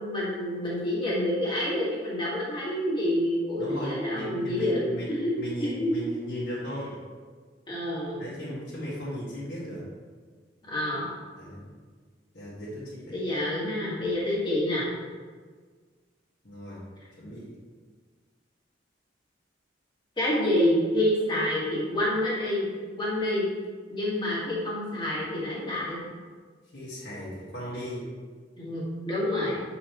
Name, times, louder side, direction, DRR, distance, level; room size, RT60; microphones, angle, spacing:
voice 1, 0.0-5.9 7.7-8.2 10.7-11.1 13.1-14.9 20.2-22.7 22.9-23.5 23.9-26.0 28.6-29.6, left 1 dB, 25° left, -6 dB, 1.7 m, -28 dB
voice 2, 3.6-7.0 8.2-9.9 11.4-11.6 12.3-13.2 16.4-16.8 17.2-17.5 26.7-28.1, equal, 60° left, -12 dB, 1.8 m, -36 dB
8.4 x 4.1 x 3.1 m, 1.5 s
head